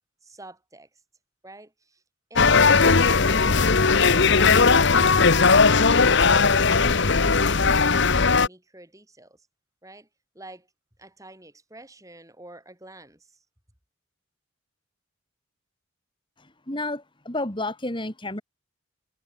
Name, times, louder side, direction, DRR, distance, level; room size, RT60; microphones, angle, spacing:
voice 1, 0.2-1.0 1.4-2.0 2.3-3.4 3.8-6.0 6.2-9.5 9.8-10.1 10.3-10.7 11.0-13.4, right 1 dB, 15° right, 6.3 m, -47 dB
sound 1, 2.4-8.5, left 4 dB, 55° left, 1.1 m, -18 dB
voice 2, 16.4-18.4, left 2 dB, 25° left, 2.8 m, -31 dB
head